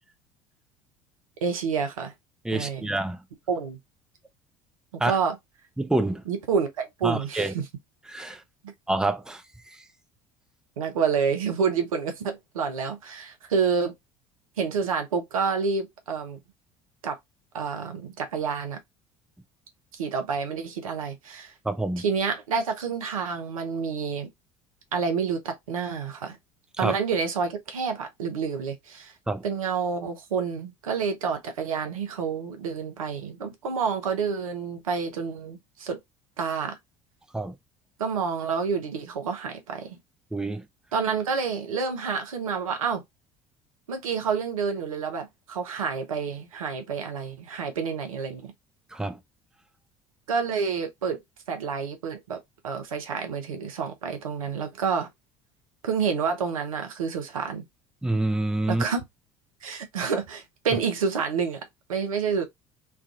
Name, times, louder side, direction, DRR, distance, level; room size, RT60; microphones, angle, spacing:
voice 1, 1.4-2.1 2.5-2.9 3.5-3.8 4.9-5.3 6.3-7.7 10.8-13.9 14.6-16.4 17.0-17.2 17.5-18.8 20.0-21.5 22.0-24.3 24.9-26.4 26.8-29.1 29.4-36.0 36.4-36.8 38.0-40.0 40.9-43.0 43.9-48.5 50.3-51.2 51.5-55.1 55.8-57.7 58.7-59.0 59.6-62.4, right 6 dB, 80° right, 0.7 m, -28 dB
voice 2, 2.4-3.2 5.0-5.2 5.8-6.2 7.0-7.5 8.1-8.4 8.9-9.4 21.6-22.0 26.8-27.0 29.3-29.4 37.3-37.5 40.3-40.6 48.9-49.2 58.0-58.8, right 2 dB, 5° right, 0.6 m, -27 dB
3.3 x 2.4 x 2.4 m
figure-of-eight pair, 60°, 18 cm